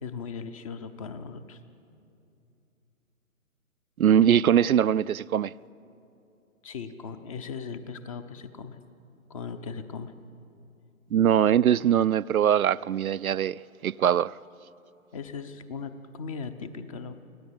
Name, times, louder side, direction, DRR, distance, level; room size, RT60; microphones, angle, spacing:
voice 1, 0.0-1.6 6.6-8.8 9.3-10.1 15.1-17.1, left 5 dB, 25° left, 0.8 m, -38 dB
voice 2, 4.0-5.5 11.1-14.3, right 9 dB, 75° right, 0.5 m, -22 dB
25.0 x 17.0 x 8.8 m
figure-of-eight pair, 135°, 43 cm